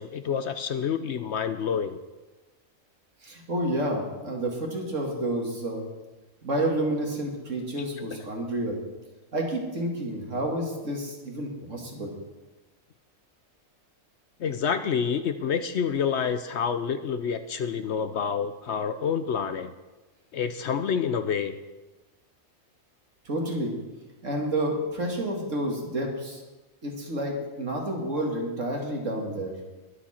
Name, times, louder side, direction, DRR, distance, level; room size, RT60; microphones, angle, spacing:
voice 1, 0.0-2.0 14.4-19.7 20.3-21.6, left 7 dB, 65° left, 10 dB, 0.8 m, -28 dB
voice 2, 3.2-5.8 6.4-8.8 9.3-12.1 23.3-23.7 24.2-26.4 26.8-29.6, right 1 dB, 65° right, 0 dB, 2.6 m, -29 dB
21.0 x 7.3 x 4.3 m, 1.1 s
omnidirectional pair, 1.4 m